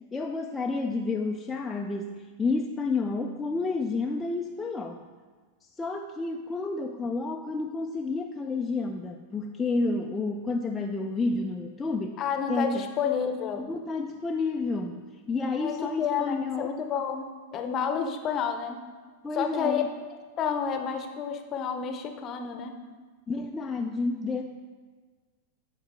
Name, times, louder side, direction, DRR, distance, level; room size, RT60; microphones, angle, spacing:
voice 1, 0.1-5.1 5.6-12.2 12.5-12.9 13.6-15.0 15.3-16.7 19.2-19.9 23.3-24.4, left 3 dB, 15° left, 1 dB, 0.4 m, -30 dB
voice 2, 12.2-13.6 15.6-18.8 19.3-19.8 20.4-22.7, left 7 dB, 30° left, 5 dB, 0.8 m, -30 dB
10.5 x 4.6 x 3.7 m, 1.4 s
figure-of-eight pair, 90°, 0 cm